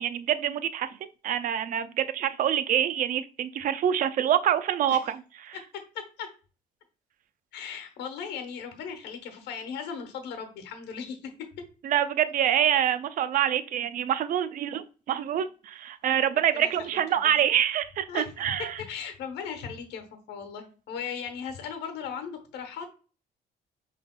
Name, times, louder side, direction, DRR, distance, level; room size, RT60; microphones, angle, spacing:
voice 1, 0.0-5.2 5.5-5.6 11.8-18.8, right 10 dB, 55° right, 13 dB, 0.5 m, -26 dB
voice 2, 5.5-6.3 7.5-11.3 16.5-16.9 18.1-18.3 18.6-22.9, left 7 dB, 80° left, 7 dB, 1.1 m, -37 dB
5.7 x 3.4 x 2.3 m, 0.36 s
cardioid pair, 110°, 17 cm